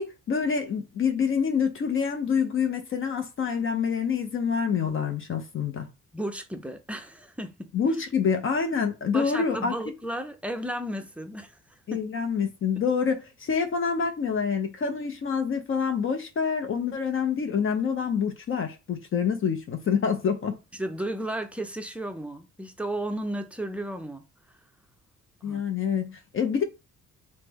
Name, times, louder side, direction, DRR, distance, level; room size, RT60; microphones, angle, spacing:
voice 1, 0.0-5.9 7.7-9.8 11.9-20.6 25.4-26.6, left 6 dB, 45° left, 0.6 m, -27 dB
voice 2, 6.1-7.7 9.1-11.6 11.9-12.0 20.7-24.2 25.4-25.6, right 1 dB, 5° right, 0.5 m, -33 dB
3.2 x 2.0 x 3.4 m
cardioid pair, 90°, 30 cm